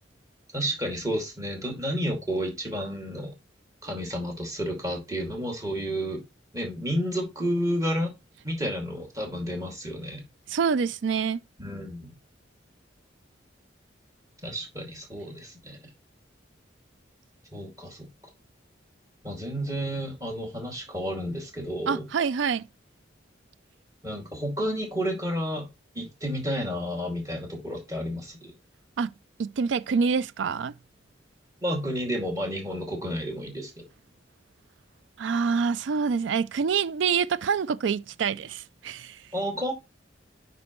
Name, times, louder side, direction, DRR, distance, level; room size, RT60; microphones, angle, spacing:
voice 1, 0.5-3.3 3.8-6.2 6.5-8.1 8.4-10.2 11.6-12.1 14.4-15.8 17.5-18.1 19.2-22.0 24.0-25.7 25.9-28.5 31.6-33.9 39.3-39.7, equal, 20° right, 2.4 m, -31 dB
voice 2, 10.5-11.4 21.9-22.6 29.0-29.1 29.4-30.7 35.2-39.2, right 6 dB, 80° right, 0.4 m, -26 dB
9.3 x 5.5 x 3.1 m
head